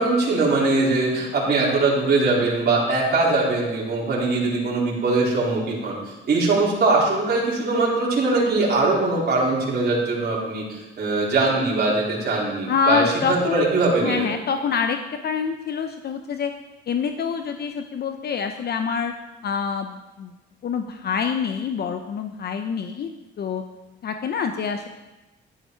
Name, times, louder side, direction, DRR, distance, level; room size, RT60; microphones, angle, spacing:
voice 1, 0.0-14.3, right 3 dB, 55° right, -5 dB, 3.8 m, -21 dB
voice 2, 12.7-13.7 14.0-15.0 15.2-16.5 16.9-19.1 19.4-20.3 20.6-23.1 23.4-23.6 24.0-24.9, left 6 dB, 55° left, 6 dB, 0.8 m, -26 dB
11.5 x 9.6 x 4.6 m, 1.1 s
cardioid pair, 90°, 20 cm